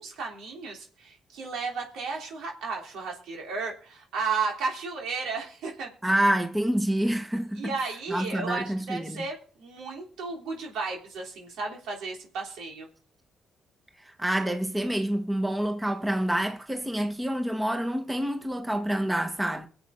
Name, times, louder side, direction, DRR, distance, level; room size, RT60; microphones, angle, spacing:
voice 1, 0.0-5.9 7.6-12.9, right 4 dB, 85° right, 3.4 m, -34 dB
voice 2, 6.0-7.8 8.1-9.2 14.0-19.7, right 1 dB, 10° right, 1.5 m, -27 dB
23.0 x 7.9 x 3.7 m
supercardioid pair, 70°, 0 cm